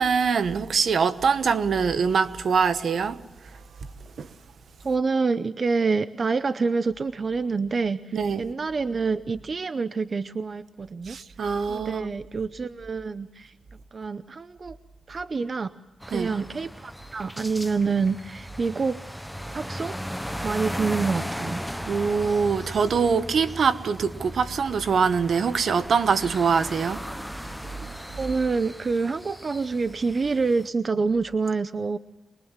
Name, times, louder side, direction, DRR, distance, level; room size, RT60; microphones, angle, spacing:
voice 1, 0.0-3.2 4.2-4.3 8.1-8.4 11.1-12.1 16.1-16.3 19.5-19.6 21.9-27.0, right 5 dB, 70° right, 1.2 m, -23 dB
voice 2, 4.8-11.2 11.7-13.5 13.9-14.8 15.1-15.8 16.1-19.0 19.5-20.0 20.4-21.6 28.2-32.0, right 4 dB, 45° right, 0.7 m, -27 dB
sound 1, 16.0-30.7, equal, ahead, 0.7 m, -37 dB
24.0 x 21.5 x 7.3 m
cardioid pair, 90°, 0 cm